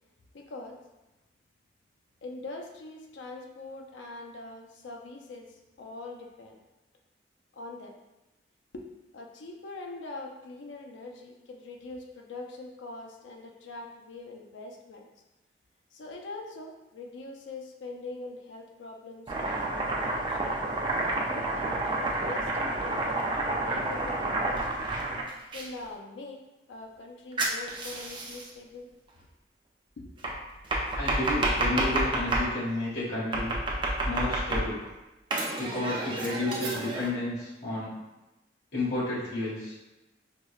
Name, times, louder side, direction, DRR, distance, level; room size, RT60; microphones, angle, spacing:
voice 1, 0.3-0.8 2.2-6.6 7.5-8.0 8.7-15.1 15.9-20.5 21.1-24.8 25.5-26.4 26.7-28.9 30.0-30.1, left 2 dB, 80° left, 2 dB, 0.4 m, -43 dB
Domestic sounds home sounds, 19.3-25.7 27.4-28.5 30.2-32.5 33.3-34.9 35.3-37.1, right 2 dB, 25° right, 0.3 m, -29 dB
voice 2, 30.9-33.5 34.0-34.8 35.6-37.9 38.7-39.7, left 2 dB, 60° left, -8 dB, 1.4 m, -31 dB
4.5 x 2.1 x 2.3 m, 1.0 s
head